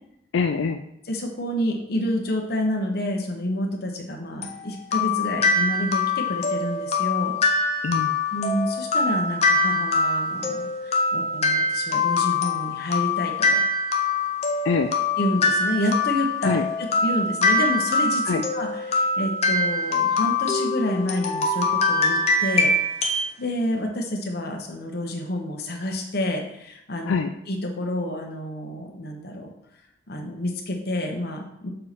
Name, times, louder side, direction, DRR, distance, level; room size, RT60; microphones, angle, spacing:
voice 1, 0.3-0.8 7.8-8.2 14.6-14.9 16.4-16.7 18.3-18.4 27.1-27.3, left 5 dB, 90° left, 6 dB, 0.4 m, -24 dB
voice 2, 1.1-7.3 8.3-13.6 15.2-16.6 17.0-22.7 23.4-27.2 27.5-29.5 30.1-31.7, left 1 dB, 55° left, 2 dB, 1.1 m, -28 dB
sound 1, 4.4-23.3, left 3 dB, 35° left, 0.8 m, -23 dB
6.6 x 4.5 x 4.2 m, 0.78 s
head